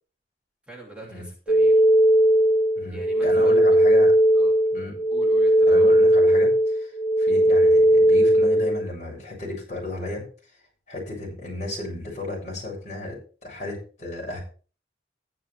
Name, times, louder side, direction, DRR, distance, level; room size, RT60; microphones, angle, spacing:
voice 1, 0.7-1.8 2.9-4.0 4.3-4.6 5.1-6.1, right 2 dB, 5° right, -3 dB, 2.9 m, -43 dB
sound 1, 1.5-8.9, right 1 dB, 75° left, 1.3 m, -18 dB
voice 2, 2.8-4.1 4.7-4.9 5.7-6.9 7.2-10.2 10.9-14.4, left 1 dB, 40° left, -3 dB, 7.7 m, -34 dB
14.0 x 10.0 x 3.5 m, 0.38 s
head